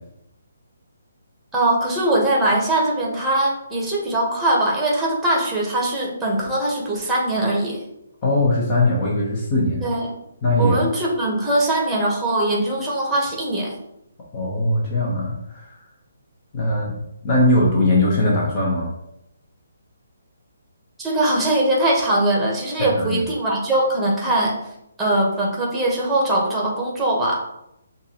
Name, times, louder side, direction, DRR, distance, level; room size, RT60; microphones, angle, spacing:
voice 1, 1.5-7.8 9.8-10.1 10.6-13.7 21.0-24.6 25.0-27.4, right 1 dB, 5° right, -3 dB, 1.3 m, -21 dB
voice 2, 8.2-9.9 10.4-10.8 14.3-15.8 16.5-17.0 17.2-18.9 22.8-23.2, left 1 dB, 30° left, -4 dB, 1.2 m, -20 dB
6.5 x 2.7 x 3.0 m, 0.81 s
figure-of-eight pair, 140°, 0 cm